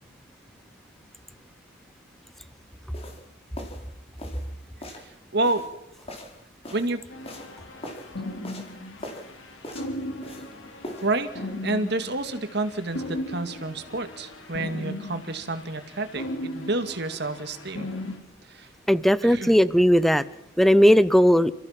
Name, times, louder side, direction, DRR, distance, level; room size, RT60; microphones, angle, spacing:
sound 1, 2.9-3.2 3.6-3.9 4.2-4.5 4.8-5.1 5.4-6.9 7.2-7.5 7.8-8.1 8.4-8.7 9.0-9.3 9.6-10.5 10.8-11.1, left 1 dB, 30° left, 4.1 m, -40 dB
voice 1, 4.9-5.6 6.7-7.0 11.0-17.9 18.5-18.7 19.2-19.6, right 2 dB, 55° right, 8 dB, 2.2 m, -29 dB
sound 2, 7.1-18.2, left 1 dB, 85° left, 4.4 m, -37 dB
voice 2, 18.9-20.2 20.6-21.5, equal, ahead, 16 dB, 0.7 m, -17 dB
29.5 x 15.5 x 6.0 m, 0.94 s
head